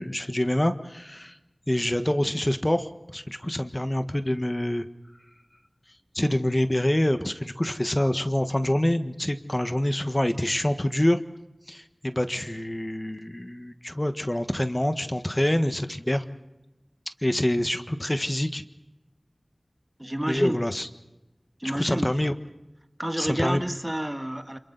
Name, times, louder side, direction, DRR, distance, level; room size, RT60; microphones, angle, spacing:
voice 1, 0.0-1.4 1.7-4.8 6.1-11.2 11.7-16.2 17.2-18.6 20.3-20.9 21.6-22.3 23.2-23.6, left 1 dB, 25° left, 1.4 m, -26 dB
voice 2, 20.0-20.6 21.6-22.1 23.0-24.6, right 1 dB, 20° right, 1.7 m, -29 dB
29.5 x 27.0 x 4.1 m
wide cardioid pair, 50°, 0 cm